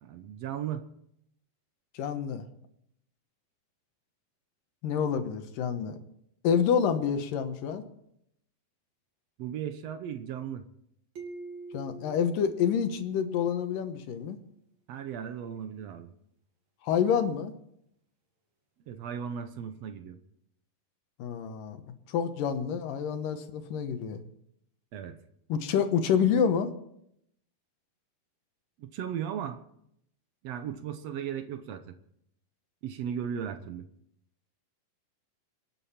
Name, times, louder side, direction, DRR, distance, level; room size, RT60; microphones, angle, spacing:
voice 1, 0.0-0.8 9.4-10.6 14.9-16.1 18.9-20.2 24.9-25.2 28.8-29.6 30.4-32.0 32.8-33.8, right 8 dB, 75° right, 8 dB, 1.5 m, -36 dB
voice 2, 1.9-2.4 4.8-6.0 6.4-7.8 11.7-14.4 16.8-17.5 21.2-21.8 22.1-24.2 25.5-26.7, left 7 dB, 75° left, 8 dB, 2.7 m, -28 dB
sound 1, 11.2-13.7, right 3 dB, 55° right, 3.4 m, -46 dB
27.0 x 9.2 x 4.3 m, 0.75 s
omnidirectional pair, 4.1 m